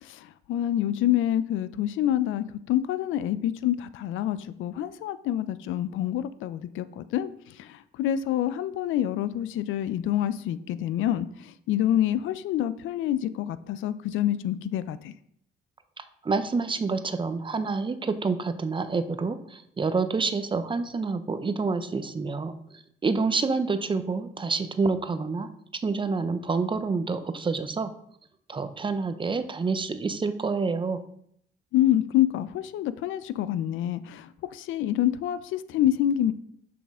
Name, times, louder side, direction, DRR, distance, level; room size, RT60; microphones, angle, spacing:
voice 1, 0.0-15.1 31.7-36.3, left 12 dB, 80° left, 15 dB, 0.4 m, -27 dB
voice 2, 16.0-25.5 25.8-27.9 28.5-31.0, right 4 dB, 25° right, 11 dB, 0.6 m, -28 dB
6.1 x 5.8 x 3.6 m, 0.70 s
cardioid pair, 90°, 20 cm